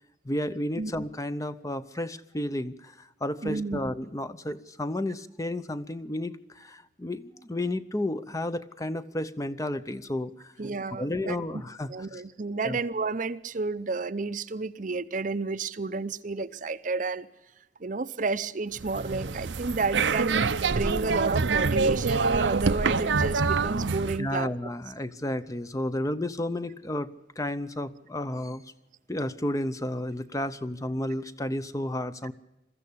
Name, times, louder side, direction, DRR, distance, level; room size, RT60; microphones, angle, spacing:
voice 1, 0.2-10.5 10.9-12.2 12.6-12.8 24.2-27.1 27.4-28.6 29.1-32.3, left 1 dB, 20° left, 12 dB, 0.7 m, -32 dB
voice 2, 3.4-3.8 10.6-11.4 11.9-17.3 17.8-24.5, right 3 dB, 45° right, 13 dB, 0.7 m, -31 dB
sound 1, 18.8-24.2, right 4 dB, 80° right, 0.8 m, -26 dB
22.0 x 14.0 x 8.5 m, 0.95 s
head